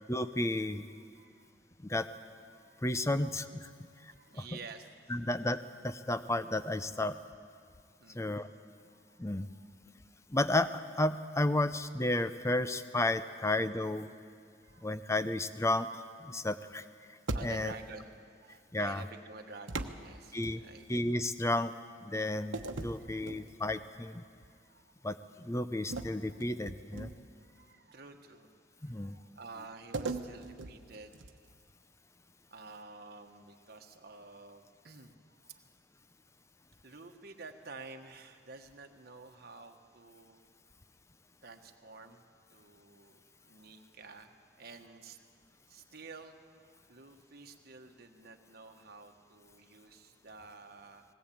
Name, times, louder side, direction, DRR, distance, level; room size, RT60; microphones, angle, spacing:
voice 1, 0.1-0.9 1.8-2.1 2.8-3.7 4.3-4.4 5.1-7.2 8.1-8.5 9.2-9.5 10.3-14.1 14.8-16.8 17.4-17.7 18.7-19.0 20.3-20.6 20.9-21.7 22.0-24.2 25.0-27.1 28.8-29.2, left 1 dB, 15° left, 11 dB, 0.6 m, -32 dB
voice 2, 0.9-1.5 2.5-3.1 4.1-4.9 8.0-8.4 8.8-9.2 9.5-9.6 14.6-15.0 16.3-16.6 17.3-20.9 23.0-23.3 24.4-25.0 25.7-26.4 27.4-28.5 28.7-31.2 32.5-35.6 36.8-40.4 41.4-42.2 42.5-45.2 45.7-51.0, right 3 dB, 55° right, 4 dB, 1.4 m, -51 dB
sound 1, 17.3-17.9 19.7-21.0 22.5-23.9 24.3-24.6 25.9-27.4 29.9-31.6, right 3 dB, 90° right, 1.1 m, -40 dB
20.0 x 18.0 x 8.7 m, 2.2 s
head